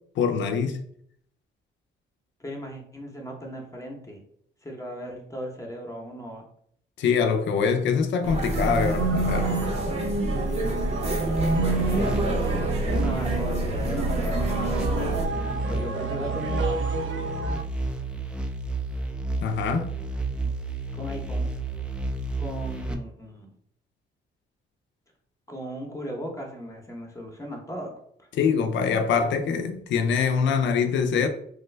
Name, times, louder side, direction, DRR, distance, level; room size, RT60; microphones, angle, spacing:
voice 1, 0.2-0.8 7.0-9.7 19.4-19.9 28.3-31.3, left 6 dB, 65° left, 0.5 m, -24 dB
voice 2, 2.4-4.2 4.6-6.4 11.6-16.6 19.6-19.9 20.4-20.5 20.9-21.5 22.4-23.5 25.5-27.9 28.2-28.3, equal, 15° left, 0.8 m, -37 dB
sound 1, 8.2-15.3, right 1 dB, 35° right, 0.7 m, -28 dB
sound 2, 8.5-17.6, right 3 dB, 85° right, 0.5 m, -30 dB
sound 3, 11.4-22.9, right 3 dB, 5° right, 0.4 m, -31 dB
3.2 x 2.2 x 3.2 m
cardioid pair, 90°, 20 cm